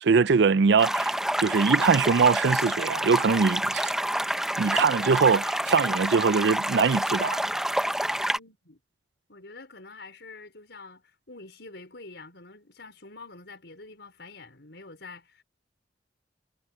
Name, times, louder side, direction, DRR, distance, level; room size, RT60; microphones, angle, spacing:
voice 1, 0.0-3.9 4.6-7.4, right 5 dB, 75° right, 0.5 m, -22 dB
sound 1, 0.8-8.4, right 1 dB, 5° right, 0.6 m, -28 dB
voice 2, 8.3-8.8 9.3-15.4, left 3 dB, 75° left, 5.1 m, -46 dB
head